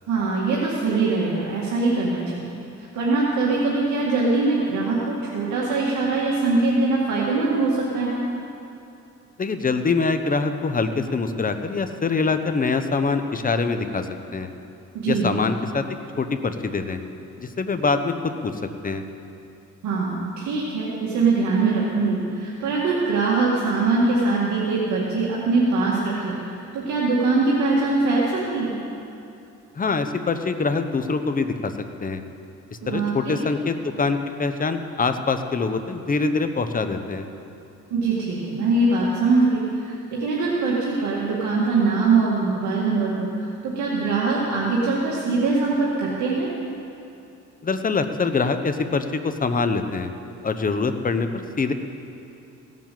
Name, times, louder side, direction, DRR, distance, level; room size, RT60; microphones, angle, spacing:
voice 1, 0.1-2.5 2.9-8.2 14.9-15.3 19.8-26.3 26.7-28.8 32.8-33.4 37.9-46.5, right 3 dB, 75° right, -6 dB, 2.1 m, -22 dB
voice 2, 9.4-14.5 15.1-15.8 16.2-17.0 17.4-18.5 18.8-19.0 29.8-31.7 32.0-32.2 32.9-37.3 47.6-50.1 50.4-51.7, left 4 dB, 30° left, 8 dB, 1.0 m, -24 dB
16.5 x 7.5 x 7.6 m, 2.7 s
cardioid pair, 90°, 30 cm